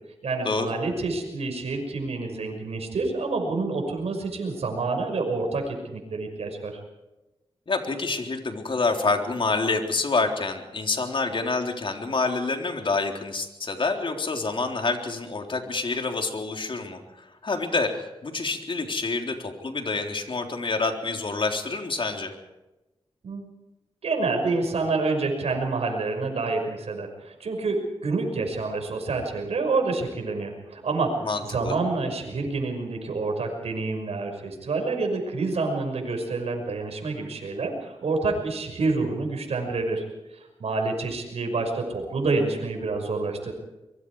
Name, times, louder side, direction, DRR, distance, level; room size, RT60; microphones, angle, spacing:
voice 1, 0.2-6.8 23.2-23.5 24.0-40.0 40.3-43.5, right 3 dB, 80° right, 3 dB, 5.9 m, -28 dB
voice 2, 7.7-22.3 31.2-31.7, left 3 dB, 55° left, 4 dB, 3.7 m, -27 dB
24.5 x 23.0 x 4.9 m, 1.0 s
cardioid pair, 65°, 11 cm